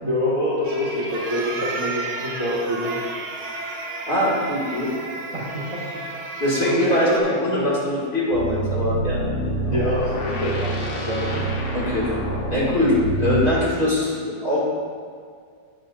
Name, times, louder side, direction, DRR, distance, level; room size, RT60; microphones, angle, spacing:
voice 1, 0.0-2.9 5.3-6.0 6.6-7.7 9.7-11.3, left 1 dB, 20° right, -6 dB, 1.2 m, -25 dB
sound 1, 0.6-7.2, right 3 dB, 65° right, 1.5 m, -32 dB
voice 2, 4.1-4.9 6.4-9.2 11.7-12.1 12.5-14.6, left 1 dB, 30° left, -7 dB, 2.4 m, -22 dB
sound 2, 8.3-13.6, right 1 dB, 90° left, 1.8 m, -26 dB
11.5 x 7.9 x 2.5 m, 2.1 s
omnidirectional pair, 1.9 m